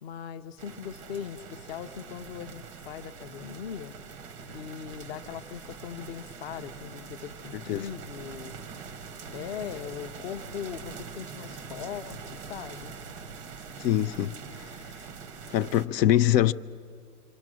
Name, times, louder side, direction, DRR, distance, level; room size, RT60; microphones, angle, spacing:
voice 1, 0.0-3.9 4.5-8.5 9.3-12.9, left 9 dB, 40° left, 0.6 m, -40 dB
sound 1, 0.6-15.9, right 5 dB, 20° right, 0.5 m, -43 dB
voice 2, 13.8-14.3 15.5-16.5, left 12 dB, 80° left, 0.7 m, -23 dB
27.5 x 25.0 x 6.2 m
supercardioid pair, 165°, 49 cm